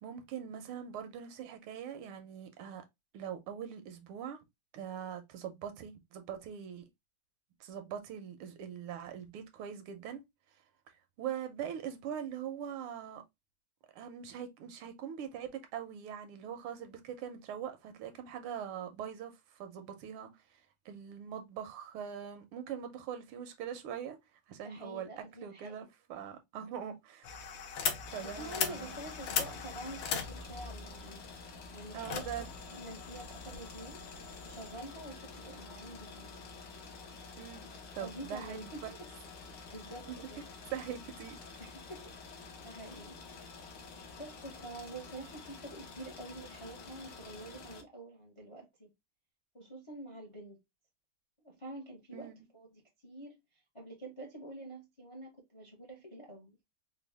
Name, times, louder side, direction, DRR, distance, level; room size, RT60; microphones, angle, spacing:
voice 1, 0.0-2.8 3.1-4.4 4.7-6.9 7.6-10.2 11.2-13.2 13.9-24.2 24.5-25.1 25.4-27.4 28.1-28.9 31.9-32.5 37.4-37.7 37.9-39.0 40.1-40.2 40.7-41.5 52.1-52.4, right 9 dB, 80° right, 1.6 m, -42 dB
voice 2, 24.6-25.9 28.2-31.2 31.7-32.3 32.7-34.0 34.4-36.4 37.5-38.8 39.7-40.5 41.6-43.2 44.1-48.9 49.5-50.6 51.4-53.3 53.7-56.6, right 1 dB, 30° left, 0.5 m, -47 dB
sound 1, 27.2-34.7, left 6 dB, 85° left, 1.7 m, -39 dB
sound 2, 28.0-47.8, left 4 dB, 65° left, 1.4 m, -49 dB
4.2 x 2.2 x 3.2 m
omnidirectional pair, 2.4 m